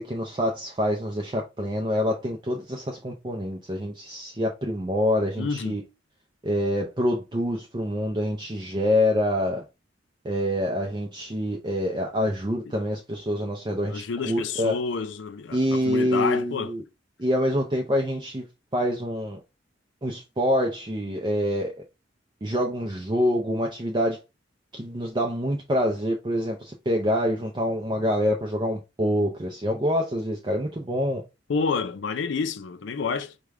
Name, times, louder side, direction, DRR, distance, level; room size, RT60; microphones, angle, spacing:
voice 1, 0.0-5.8 6.4-9.6 10.2-14.8 15.5-16.8 17.2-18.4 18.7-19.4 20.0-21.8 22.4-24.2 24.7-31.2, equal, 25° right, 0.5 m, -26 dB
voice 2, 5.4-5.8 13.9-16.7 31.5-33.4, left 4 dB, 80° left, 0.5 m, -29 dB
4.8 x 2.3 x 3.5 m
head